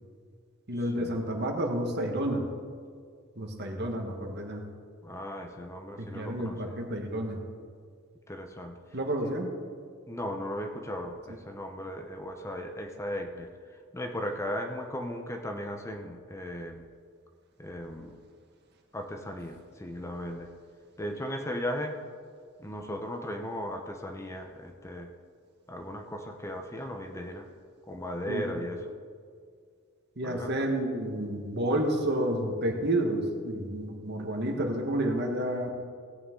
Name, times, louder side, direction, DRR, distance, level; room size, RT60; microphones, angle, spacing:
voice 1, 0.7-2.4 3.4-4.6 6.0-7.4 8.9-9.5 28.3-28.7 30.2-35.7, right 1 dB, 55° right, 2 dB, 1.5 m, -30 dB
voice 2, 5.0-6.7 8.3-8.8 10.1-13.5 13.9-16.9 17.6-18.2 18.9-20.5 21.0-22.0 22.6-25.1 25.7-27.5 27.9-28.8 30.2-30.7, equal, 15° left, 4 dB, 0.8 m, -37 dB
17.0 x 8.8 x 3.8 m, 2.1 s
head